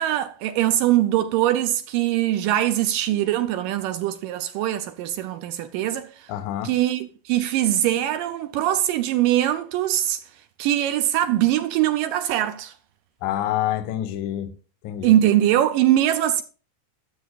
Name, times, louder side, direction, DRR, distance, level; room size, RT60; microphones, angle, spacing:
voice 1, 0.0-6.3 6.6-10.2 10.6-12.7 15.0-16.4, right 12 dB, 80° right, 2.0 m, -22 dB
voice 2, 6.3-6.7 13.2-14.5 14.8-15.2, left 12 dB, 70° left, 2.0 m, -27 dB
14.5 x 7.7 x 2.3 m
omnidirectional pair, 4.3 m